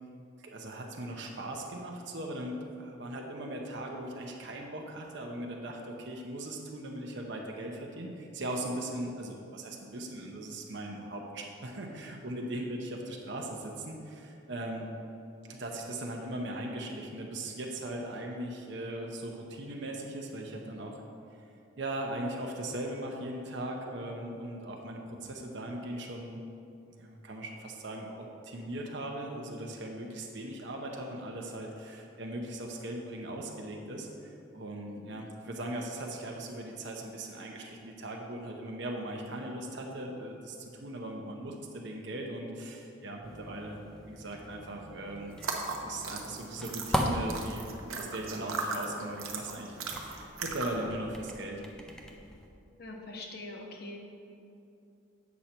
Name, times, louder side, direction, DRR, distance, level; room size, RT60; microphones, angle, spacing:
voice 1, 0.4-14.9 15.4-21.0 21.8-26.4 26.9-45.3 45.7-51.6, right 1 dB, 60° right, 1 dB, 0.8 m, -39 dB
sound 1, 43.2-52.5, equal, 5° left, 0.5 m, -39 dB
sound 2, 45.3-50.9, right 4 dB, 90° right, 0.9 m, -38 dB
voice 2, 48.0-48.3 52.8-54.0, left 2 dB, 50° left, 1 dB, 1.0 m, -44 dB
8.3 x 6.3 x 4.4 m, 2.6 s
head